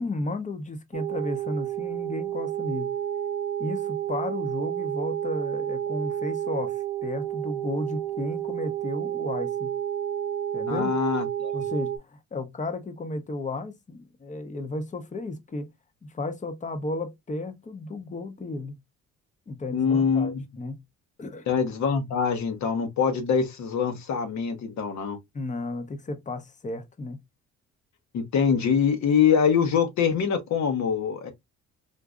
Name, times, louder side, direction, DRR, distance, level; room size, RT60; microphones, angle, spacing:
voice 1, 0.0-2.9 3.6-9.7 10.5-10.9 11.5-15.7 16.0-18.8 19.5-20.8 21.2-21.5 25.3-27.2, left 2 dB, 25° left, 0.7 m, -33 dB
sound 1, 0.9-12.0, right 11 dB, 75° right, 0.6 m, -30 dB
voice 2, 10.7-11.5 19.7-20.4 21.5-25.2 28.1-31.3, left 6 dB, 65° left, 1.0 m, -24 dB
3.8 x 2.6 x 2.3 m
cardioid pair, 90°, 30 cm